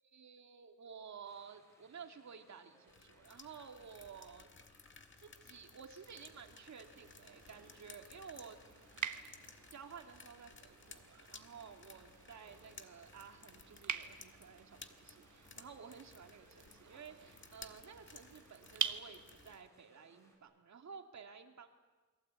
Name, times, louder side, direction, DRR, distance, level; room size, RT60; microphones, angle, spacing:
voice 1, 0.0-4.5 5.2-8.6 9.7-21.7, right 6 dB, 65° right, 4 dB, 2.4 m, -53 dB
sound 1, 1.2-20.4, equal, 10° left, 5.7 m, -69 dB
sound 2, 2.9-19.7, left 4 dB, 40° left, 1.5 m, -58 dB
sound 3, 6.1-19.6, right 8 dB, 85° right, 1.2 m, -47 dB
28.5 x 22.5 x 8.3 m, 1.3 s
wide cardioid pair, 165°, 29 cm